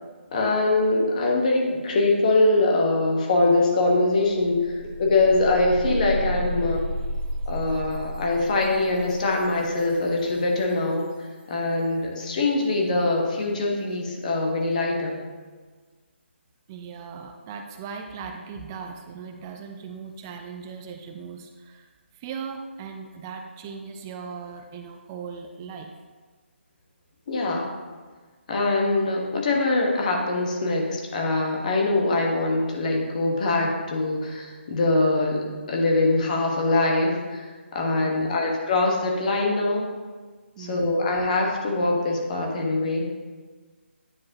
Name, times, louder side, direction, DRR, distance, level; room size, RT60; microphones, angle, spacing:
voice 1, 0.3-6.8 7.5-11.1 11.5-15.2 27.3-27.7 28.5-39.9 40.6-43.1, left 2 dB, 40° left, 0 dB, 1.2 m, -23 dB
sound 1, 3.7-3.8 4.1-10.9, equal, 35° right, 1.0 m, -33 dB
voice 2, 6.4-6.9 16.7-21.9 22.1-25.9 38.0-38.5 40.6-41.1, right 6 dB, 15° right, 4 dB, 0.4 m, -38 dB
9.7 x 4.7 x 2.8 m, 1.4 s
figure-of-eight pair, 155°, 7 cm